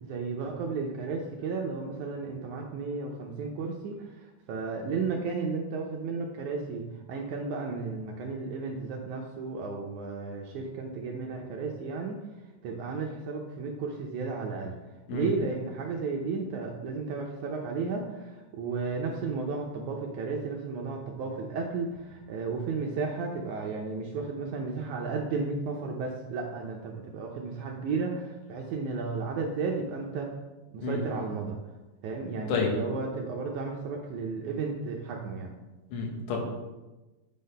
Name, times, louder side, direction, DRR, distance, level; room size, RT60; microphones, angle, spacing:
voice 1, 0.0-6.8 7.1-12.2 12.6-14.7 15.1-30.3 30.7-31.6 32.0-35.5, right 4 dB, 75° right, 1 dB, 1.9 m, -33 dB
voice 2, 35.9-36.4, left 5 dB, 65° left, 0 dB, 2.7 m, -29 dB
8.4 x 4.1 x 5.3 m, 1.1 s
omnidirectional pair, 4.0 m